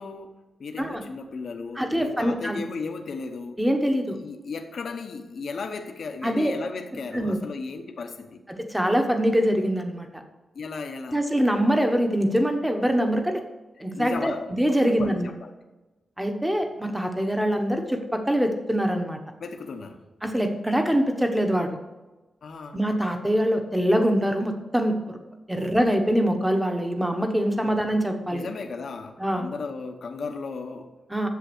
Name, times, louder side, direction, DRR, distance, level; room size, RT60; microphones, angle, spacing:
voice 1, 0.0-3.6 4.2-8.4 10.5-11.3 13.8-14.5 14.9-15.5 19.4-20.0 22.4-22.8 27.6-27.8 28.3-30.9, left 4 dB, 55° left, 5 dB, 0.8 m, -35 dB
voice 2, 1.8-2.6 3.6-4.2 6.2-6.5 7.1-7.4 8.6-10.2 11.1-13.4 13.8-15.3 16.2-19.2 20.2-21.8 22.7-25.2 25.5-28.5 29.2-29.5 31.1-31.3, equal, 5° right, 5 dB, 1.0 m, -24 dB
8.3 x 7.3 x 6.1 m, 1.1 s
wide cardioid pair, 170°, 0 cm